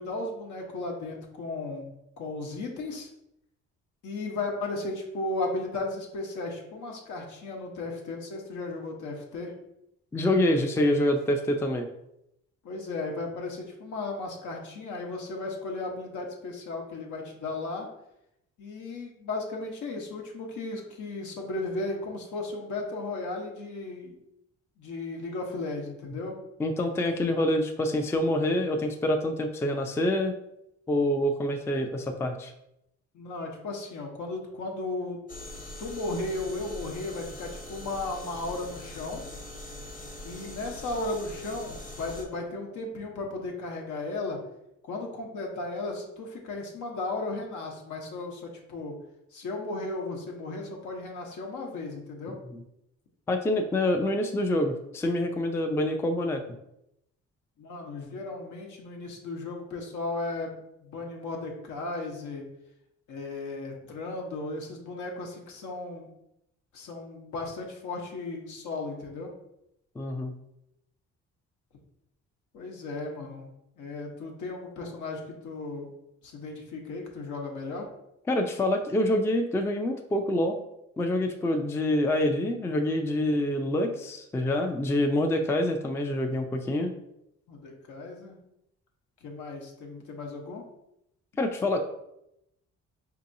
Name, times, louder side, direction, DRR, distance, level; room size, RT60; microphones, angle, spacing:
voice 1, 0.0-1.9 2.2-3.1 4.0-9.5 12.6-17.9 18.6-24.2 24.8-26.3 33.1-35.2 35.8-39.2 40.2-44.4 44.8-48.9 49.3-52.4 57.6-62.4 63.1-66.1 66.7-69.3 72.5-73.5 73.8-75.9 76.2-77.9 87.5-88.4 89.2-90.6, left 2 dB, 75° left, 1 dB, 0.9 m, -35 dB
voice 2, 10.1-11.9 26.6-30.4 30.9-32.5 53.3-56.4 70.0-70.3 78.3-80.6 81.0-86.9 91.4-91.8, left 1 dB, 10° left, 5 dB, 0.3 m, -26 dB
sound 1, 35.3-42.2, left 1 dB, 25° left, 1.0 m, -42 dB
4.5 x 2.8 x 2.6 m, 0.82 s
cardioid pair, 90°, 30 cm